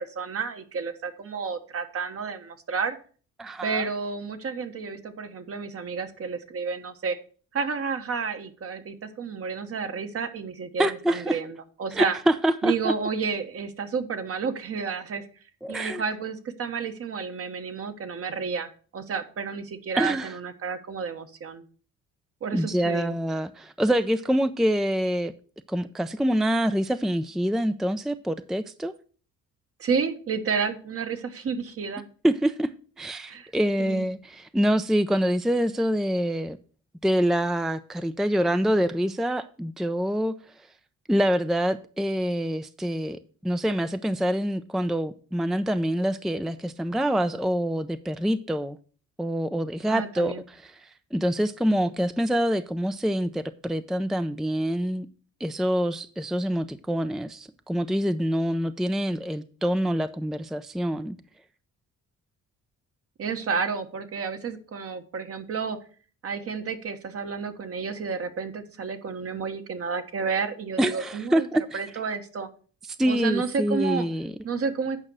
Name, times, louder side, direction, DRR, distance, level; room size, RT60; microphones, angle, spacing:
voice 1, 0.0-3.0 3.6-7.2 7.5-12.1 12.6-15.2 15.7-21.6 22.4-23.2 29.8-32.1 33.3-33.5 33.8-34.0 49.9-50.4 63.2-65.8 66.2-71.5 71.7-72.5 73.1-74.1 74.4-75.0, right 5 dB, 50° right, 1.3 m, -31 dB
voice 2, 3.4-3.9 10.8-11.4 11.9-12.9 15.6-16.0 20.0-20.3 22.5-25.3 25.7-28.9 32.2-32.7 33.0-36.6 37.0-40.4 41.1-48.8 49.2-55.1 55.4-61.2 70.8-71.8 73.0-74.3, equal, ahead, 0.4 m, -26 dB
8.9 x 5.3 x 6.2 m
cardioid pair, 90°, 30 cm